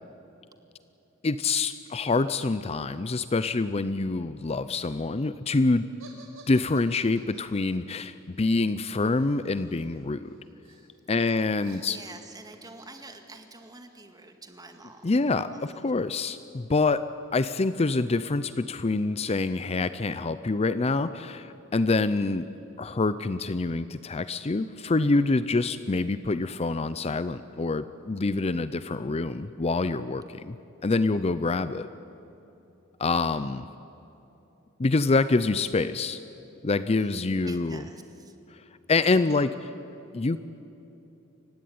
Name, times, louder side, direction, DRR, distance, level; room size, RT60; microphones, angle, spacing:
voice 1, 1.2-5.8 6.5-10.4 11.1-12.0 15.0-17.0 17.3-22.5 22.8-30.6 30.8-31.9 33.0-33.7 34.8-36.2 36.6-37.8 38.5-38.6 38.9-39.7 40.1-40.4, left 3 dB, 30° left, 13 dB, 0.5 m, -26 dB
sound 1, 6.0-10.0 10.3-10.9 11.2-15.8, right 3 dB, 75° right, 5.0 m, -54 dB
voice 2, 11.8-15.8 37.4-38.3, right 3 dB, 20° right, 6 dB, 1.9 m, -48 dB
29.0 x 16.5 x 9.5 m, 3.0 s
head